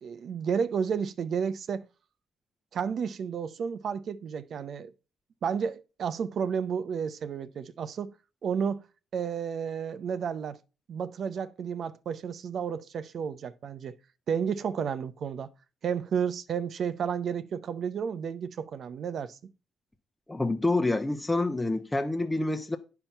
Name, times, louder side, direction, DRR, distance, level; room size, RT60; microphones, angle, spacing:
voice 1, 0.0-1.8 2.7-4.9 5.4-8.1 8.4-8.8 9.1-10.6 10.9-14.0 14.3-15.5 15.8-19.4, right 7 dB, 60° right, 0.7 m, -32 dB
voice 2, 20.3-22.8, left 2 dB, 10° left, 0.9 m, -27 dB
9.0 x 5.8 x 5.5 m
cardioid pair, 90°, 0 cm